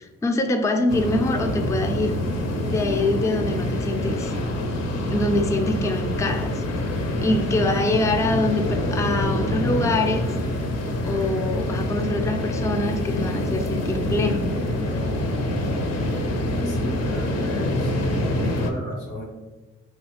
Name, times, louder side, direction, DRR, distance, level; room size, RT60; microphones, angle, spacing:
voice 1, 0.0-2.2 2.7-4.3 5.1-6.6 7.2-10.2 11.0-14.4, left 2 dB, 10° left, 4 dB, 0.4 m, -24 dB
sound 1, 0.9-18.7, left 1 dB, 55° left, 0.6 m, -26 dB
voice 2, 16.4-18.0 18.3-19.2, left 1 dB, 90° left, -1 dB, 1.0 m, -33 dB
3.1 x 2.3 x 3.1 m, 1.2 s
supercardioid pair, 50°, 30 cm